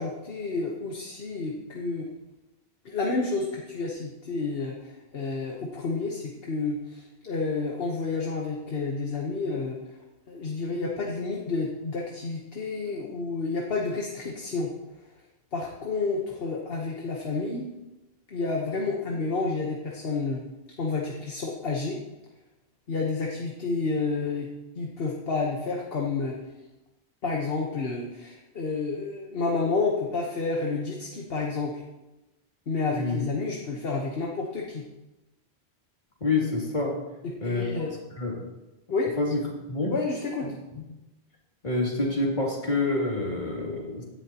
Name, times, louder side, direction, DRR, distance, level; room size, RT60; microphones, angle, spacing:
voice 1, 0.0-2.1 2.8-9.8 10.3-14.7 15.5-17.7 18.3-20.4 20.8-22.0 22.9-24.5 24.8-26.4 27.2-31.8 32.7-34.8 37.2-37.9 38.9-39.1 39.9-40.5, left 3 dB, 65° left, -1 dB, 1.4 m, -30 dB
voice 2, 32.9-33.3 36.2-36.9 37.4-37.9 38.2-38.4 39.2-39.4 39.7-39.9 40.7-40.8 41.6-44.0, left 2 dB, 45° left, -3 dB, 2.9 m, -27 dB
16.5 x 11.0 x 3.0 m, 1.0 s
omnidirectional pair, 1.1 m